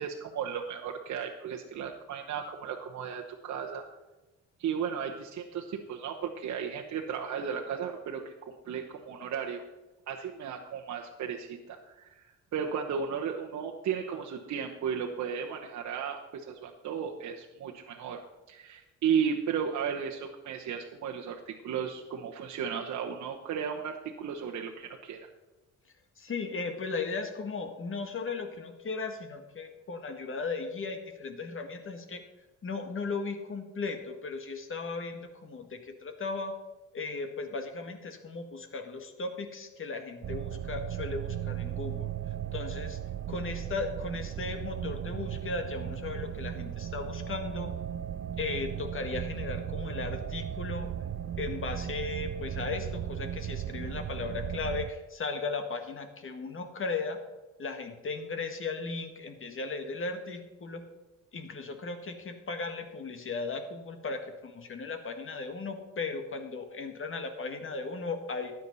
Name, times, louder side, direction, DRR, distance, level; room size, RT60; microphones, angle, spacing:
voice 1, 0.0-3.8 4.6-8.3 8.7-9.6 10.1-12.2 12.5-25.3, right 7 dB, 65° right, 0 dB, 1.1 m, -34 dB
voice 2, 26.2-32.2 32.6-36.6 36.9-42.1 42.5-43.0 43.3-47.7 48.4-50.9 51.4-57.2 57.6-60.8 61.3-68.5, left 4 dB, 45° left, 7 dB, 1.7 m, -36 dB
sound 1, 40.2-54.9, right 10 dB, 45° right, 0.5 m, -36 dB
13.0 x 9.2 x 4.1 m, 1.1 s
cardioid pair, 90°, 30 cm